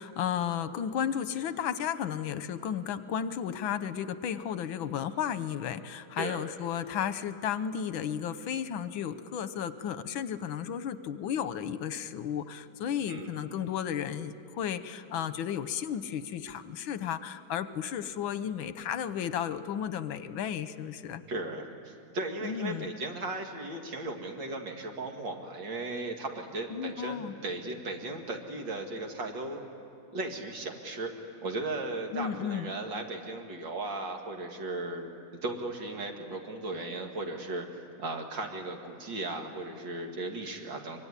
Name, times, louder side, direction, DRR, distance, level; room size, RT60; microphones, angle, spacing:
voice 1, 0.0-21.2 22.4-23.0 26.7-27.3 32.1-32.7, left 8 dB, 85° left, 13 dB, 1.7 m, -33 dB
voice 2, 6.2-6.5 13.1-13.3 21.3-29.6 30.1-31.1 31.4-41.0, right 2 dB, 70° right, 2 dB, 2.9 m, -36 dB
24.5 x 23.5 x 9.9 m, 2.5 s
omnidirectional pair, 2.1 m